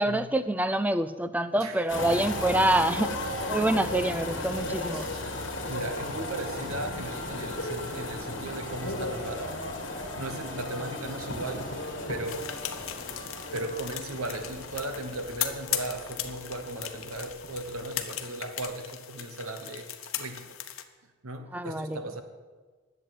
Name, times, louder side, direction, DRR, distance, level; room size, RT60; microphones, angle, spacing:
voice 1, 0.0-3.1 3.5-5.1 21.5-22.0, right 1 dB, 5° right, 12 dB, 0.4 m, -26 dB
voice 2, 1.6-2.2 4.9-5.2 5.7-9.6 9.9-12.5 13.5-19.9 20.2-20.6 21.2-22.2, right 2 dB, 90° right, 7 dB, 1.1 m, -37 dB
sound 1, 1.9-18.2 18.4-18.7, left 2 dB, 55° left, 2.1 m, -36 dB
sound 2, 12.2-20.8, left 11 dB, 80° left, 1.0 m, -38 dB
11.0 x 7.9 x 9.2 m, 1.4 s
head